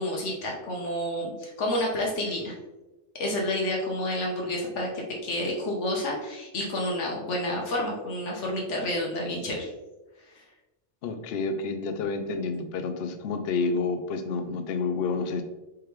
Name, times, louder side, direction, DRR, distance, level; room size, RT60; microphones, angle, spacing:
voice 1, 0.0-2.5 3.2-9.7, left 1 dB, 85° left, -2 dB, 1.2 m, -29 dB
voice 2, 11.0-15.4, left 4 dB, 65° left, 7 dB, 0.7 m, -29 dB
4.8 x 3.6 x 3.1 m, 1.0 s
omnidirectional pair, 1.2 m